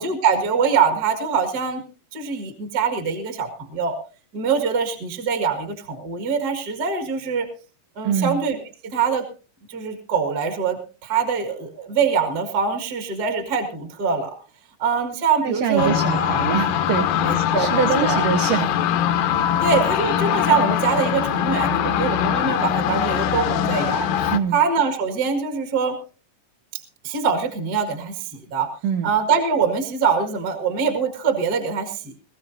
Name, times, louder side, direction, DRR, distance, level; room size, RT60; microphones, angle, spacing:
voice 1, 0.0-1.8 2.1-4.0 4.3-7.5 8.0-8.6 8.9-9.2 9.7-14.3 14.8-16.3 17.2-18.2 19.6-26.0 26.7-28.7 29.0-32.1, right 6 dB, 35° right, 5 dB, 1.9 m, -23 dB
voice 2, 8.0-8.4 15.4-18.7 24.3-24.6 28.8-29.1, right 7 dB, 60° right, 4 dB, 2.1 m, -24 dB
sound 1, 15.8-24.4, left 9 dB, 75° left, 2.3 m, -22 dB
21.5 x 14.5 x 2.6 m, 0.35 s
omnidirectional pair, 3.9 m